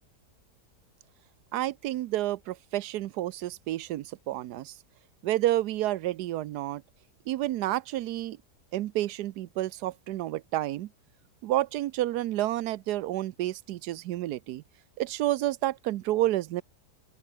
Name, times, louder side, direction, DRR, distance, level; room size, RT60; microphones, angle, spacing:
voice 1, 1.5-4.8 5.2-6.8 7.3-8.4 8.7-10.9 11.4-14.6 15.0-16.6, right 14 dB, 85° right, 1.2 m, -30 dB
open air
omnidirectional pair, 1.7 m